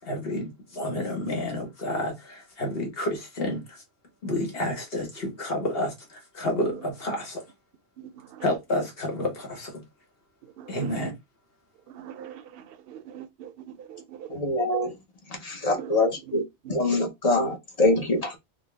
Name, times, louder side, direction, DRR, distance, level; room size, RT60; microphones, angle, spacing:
voice 1, 0.0-3.8 4.2-7.4 8.4-9.8 10.7-11.1, left 1 dB, 60° left, 1.4 m, -30 dB
voice 2, 8.0-8.4 10.6-10.9 12.0-12.4 12.9-13.5 13.9-14.3 15.8-15.9 16.6-16.8, right 10 dB, 65° right, 0.7 m, -42 dB
voice 3, 14.3-14.9 15.4-16.4 16.7-18.4, left 2 dB, 40° left, 0.8 m, -24 dB
3.8 x 2.1 x 3.4 m
omnidirectional pair, 1.1 m